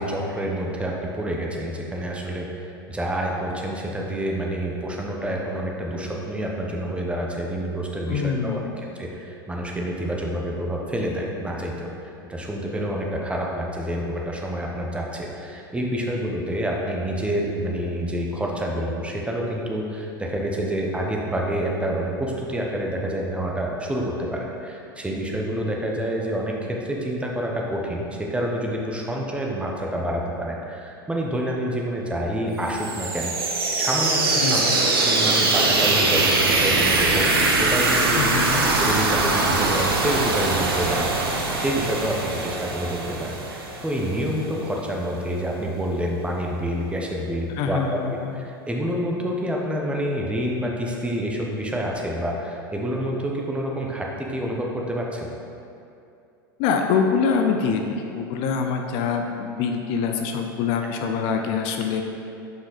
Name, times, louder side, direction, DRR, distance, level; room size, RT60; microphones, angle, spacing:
voice 1, 0.0-8.6 8.9-11.9 12.3-38.2 38.8-41.1 41.4-48.0 48.3-55.3, equal, 10° right, -1 dB, 1.0 m, -28 dB
voice 2, 8.1-8.8 34.4-34.9 38.2-38.7 47.5-48.3 56.6-62.0, left 6 dB, 55° left, 4 dB, 0.6 m, -25 dB
sound 1, 32.6-44.3, right 3 dB, 90° right, 0.8 m, -22 dB
6.0 x 5.1 x 4.1 m, 2.6 s
hypercardioid pair, 95°, 12 cm